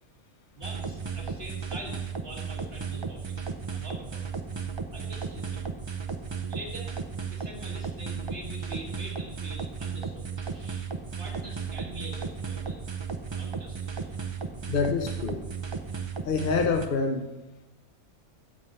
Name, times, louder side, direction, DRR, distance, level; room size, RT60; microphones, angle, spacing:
voice 1, 0.5-3.4 3.7-4.4 4.9-5.7 6.5-6.9 7.3-10.9 11.1-12.8 13.3-14.4, right 1 dB, 55° right, -1 dB, 2.3 m, -44 dB
sound 1, 0.6-16.9, right 5 dB, 30° right, 0.6 m, -35 dB
voice 2, 14.7-15.5 16.3-17.3, left 4 dB, 50° left, 4 dB, 1.1 m, -26 dB
15.0 x 5.4 x 5.6 m, 1.0 s
omnidirectional pair, 1.2 m